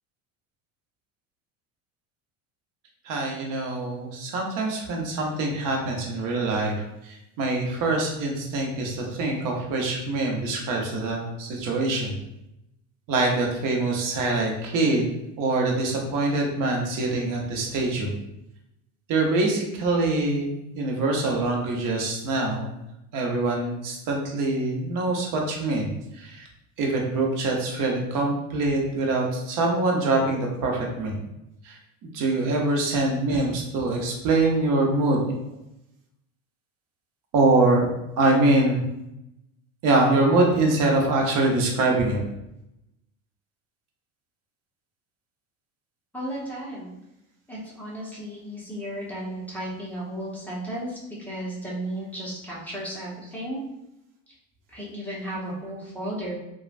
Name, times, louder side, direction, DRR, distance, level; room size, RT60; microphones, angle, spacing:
voice 1, 3.0-12.2 13.1-15.1 15.4-18.1 19.1-22.8 23.1-26.5 26.8-31.2 31.6-35.3 37.3-37.9 38.2-38.8 39.8-42.2, right 2 dB, 55° right, 0 dB, 0.8 m, -24 dB
voice 2, 46.1-46.9 47.5-53.6 54.7-56.3, right 1 dB, 5° left, -7 dB, 0.9 m, -34 dB
3.1 x 2.3 x 2.4 m, 0.86 s
supercardioid pair, 105°, 38 cm